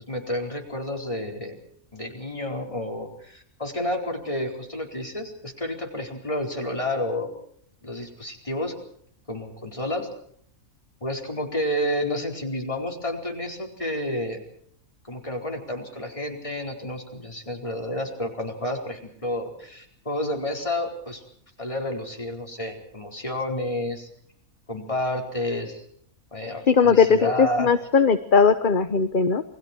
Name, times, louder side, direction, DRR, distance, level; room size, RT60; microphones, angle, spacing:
voice 1, 0.1-1.6 1.9-7.3 7.8-8.7 9.3-10.1 11.0-14.4 15.0-21.2 21.6-24.1 24.7-25.8 26.3-27.7, left 1 dB, 20° left, 2 dB, 4.6 m, -30 dB
voice 2, 26.7-29.4, left 5 dB, 40° left, 10 dB, 1.1 m, -19 dB
28.5 x 22.5 x 4.6 m, 0.63 s
omnidirectional pair, 1.5 m